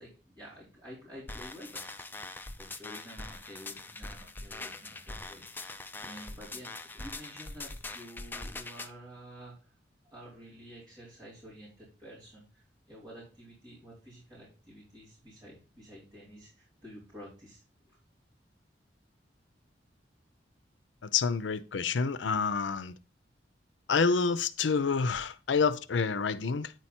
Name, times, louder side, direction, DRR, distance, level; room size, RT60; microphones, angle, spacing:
voice 1, 0.0-1.8 2.6-9.7 10.1-17.6, equal, 25° right, 4.4 m, -50 dB
sound 1, 1.3-8.9, left 2 dB, 10° left, 0.5 m, -43 dB
voice 2, 21.0-22.9 23.9-26.7, left 5 dB, 85° left, 0.6 m, -28 dB
9.2 x 4.6 x 4.3 m
head